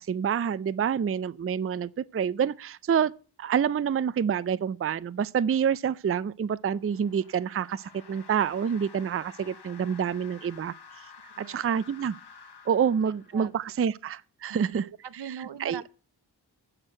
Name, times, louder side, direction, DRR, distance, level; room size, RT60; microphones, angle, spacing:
voice 1, 0.0-3.1 3.4-10.7 11.4-12.2 12.7-14.8 15.3-15.8, right 7 dB, 35° right, 0.4 m, -27 dB
sound 1, 6.7-13.7, left 5 dB, 70° left, 1.2 m, -51 dB
voice 2, 13.0-13.5 14.5-15.9, right 8 dB, 75° right, 0.7 m, -41 dB
8.7 x 6.3 x 7.5 m
wide cardioid pair, 50°, 42 cm